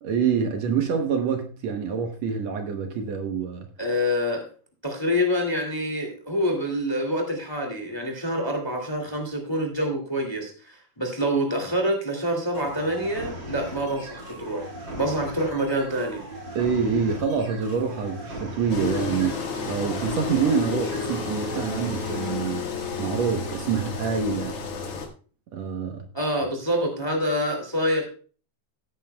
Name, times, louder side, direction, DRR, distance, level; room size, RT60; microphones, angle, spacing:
voice 1, 0.0-3.7 16.6-22.7 23.0-24.6 25.5-26.0, right 6 dB, 65° right, 2.1 m, -26 dB
voice 2, 3.8-4.4 4.8-14.7 14.9-16.2 26.1-28.1, equal, 10° left, 1.8 m, -26 dB
sound 1, 12.5-22.3, equal, 40° right, 2.4 m, -39 dB
Engine, 18.7-25.1, left 5 dB, 55° left, 2.4 m, -31 dB
16.5 x 9.2 x 2.3 m
omnidirectional pair, 3.5 m